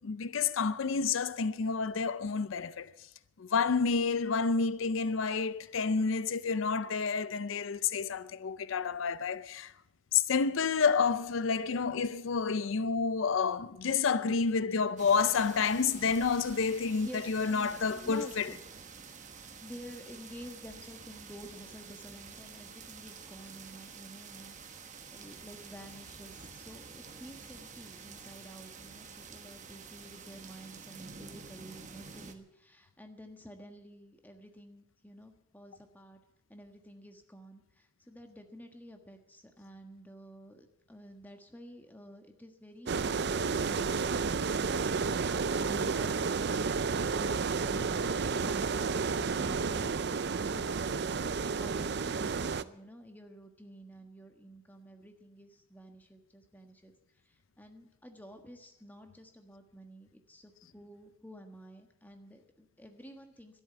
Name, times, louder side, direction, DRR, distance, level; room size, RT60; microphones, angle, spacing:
voice 1, 0.0-2.9 3.4-9.7 10.1-18.5, left 5 dB, 75° left, 0.5 m, -29 dB
sound 1, 15.0-32.3, right 5 dB, 35° right, 1.2 m, -49 dB
voice 2, 17.0-18.6 19.6-36.2 36.5-56.9 57.2-63.6, equal, 10° left, 1.4 m, -51 dB
sound 2, 42.9-52.6, right 5 dB, 55° right, 0.5 m, -31 dB
12.5 x 11.0 x 8.9 m
head